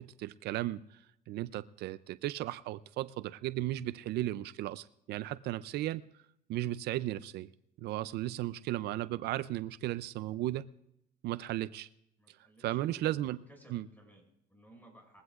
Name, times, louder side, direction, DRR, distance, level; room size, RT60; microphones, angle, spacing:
voice 1, 0.0-6.0 6.5-7.5 7.8-10.7 11.2-11.9 12.3-12.4 12.6-13.4 13.7-13.9, right 15 dB, 75° right, 0.5 m, -35 dB
voice 2, 12.2-15.2, right 1 dB, 10° left, 6.0 m, -58 dB
21.0 x 16.0 x 2.4 m
cardioid pair, 110°, 17 cm